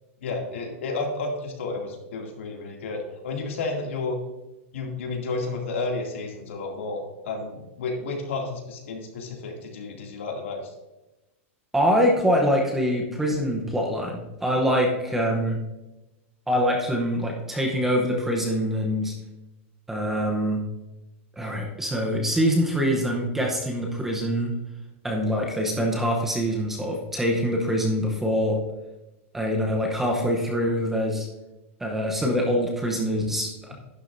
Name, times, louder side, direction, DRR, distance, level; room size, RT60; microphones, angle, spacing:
voice 1, 0.2-4.2 4.7-10.6, left 3 dB, 70° left, 1 dB, 2.5 m, -31 dB
voice 2, 11.7-15.6 16.5-19.1 19.9-20.6 21.4-24.5 25.0-28.6 29.3-31.3 31.8-33.7, equal, 5° right, 0 dB, 0.8 m, -24 dB
11.0 x 10.5 x 2.6 m, 1.0 s
supercardioid pair, 180°, 7 cm